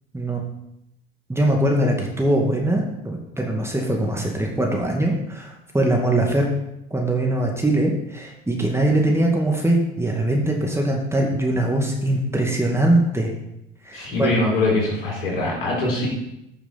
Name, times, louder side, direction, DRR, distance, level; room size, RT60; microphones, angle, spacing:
voice 1, 1.3-6.5 6.9-13.3 13.8-14.3, right 1 dB, 10° right, 0 dB, 2.2 m, -22 dB
voice 2, 13.9-16.1, left 2 dB, 75° left, -3 dB, 4.2 m, -22 dB
14.0 x 6.9 x 4.3 m, 0.83 s
hypercardioid pair, 60°, 29 cm